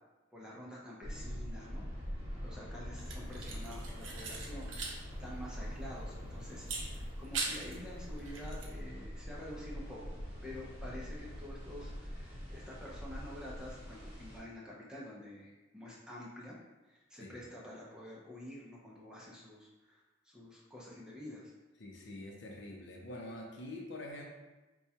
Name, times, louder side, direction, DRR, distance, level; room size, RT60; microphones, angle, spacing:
voice 1, 0.3-4.7 5.2-10.1 10.4-16.6 16.8-21.5, left 1 dB, 5° right, -5 dB, 0.6 m, -48 dB
sound 1, 1.0-14.4, equal, 30° right, 1.3 m, -44 dB
sound 2, 3.0-5.0 5.3-5.4 6.6-7.8 8.2-8.7, right 4 dB, 75° right, 0.6 m, -41 dB
voice 2, 21.8-24.3, left 1 dB, 65° left, 0 dB, 0.6 m, -45 dB
4.5 x 2.3 x 2.7 m, 1.1 s
head